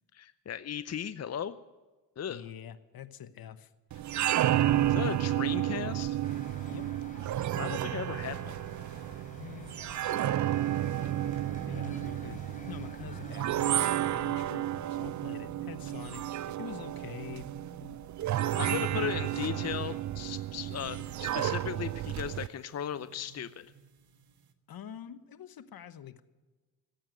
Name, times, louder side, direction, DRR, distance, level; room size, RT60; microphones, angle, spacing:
voice 1, 0.1-1.5 2.2-2.4 4.9-6.2 7.5-8.5 18.6-23.6, left 9 dB, 40° left, 13 dB, 0.7 m, -36 dB
voice 2, 2.3-4.0 4.5-5.2 6.7-6.9 9.4-13.7 14.1-17.5 17.8-18.0 18.5-19.6 24.7-26.2, left 9 dB, 65° left, 12 dB, 1.1 m, -46 dB
sound 1, 3.9-22.5, right 13 dB, 50° right, 0.5 m, -32 dB
sound 2, 6.2-13.8, left 2 dB, 20° left, 3.6 m, -51 dB
sound 3, 10.7-24.5, right 7 dB, 65° right, 1.5 m, -48 dB
18.0 x 8.8 x 9.1 m, 1.2 s
supercardioid pair, 60°, 39 cm